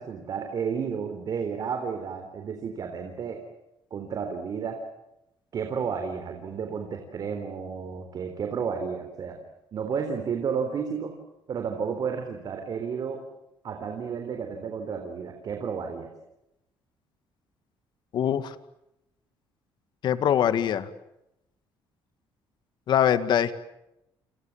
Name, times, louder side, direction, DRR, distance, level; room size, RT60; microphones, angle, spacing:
voice 1, 0.0-3.4 3.9-4.8 5.5-9.4 9.7-11.1 11.5-13.2 13.6-16.1, right 6 dB, 45° right, 5 dB, 3.8 m, -32 dB
voice 2, 18.1-18.5 20.0-20.9 22.9-23.5, left 9 dB, 55° left, 13 dB, 1.9 m, -23 dB
29.0 x 25.5 x 7.4 m, 0.86 s
cardioid pair, 130°, 9 cm